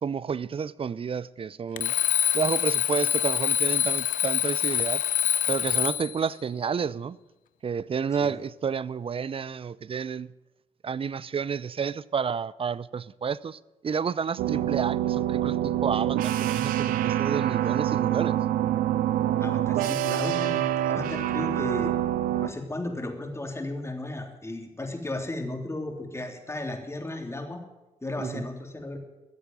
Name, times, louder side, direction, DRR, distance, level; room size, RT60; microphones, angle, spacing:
voice 1, 0.0-1.9 2.3-5.0 5.5-7.2 7.6-10.3 10.8-18.4 28.2-28.4, right 6 dB, 40° right, 0.6 m, -30 dB
Alarm, 1.8-6.2, left 11 dB, 70° left, 0.8 m, -25 dB
sound 1, 14.4-22.5, right 12 dB, 80° right, 0.7 m, -26 dB
voice 2, 19.4-21.9 22.4-27.6 28.0-29.0, left 2 dB, 20° left, 3.4 m, -35 dB
14.5 x 8.0 x 9.2 m
supercardioid pair, 55°, 14 cm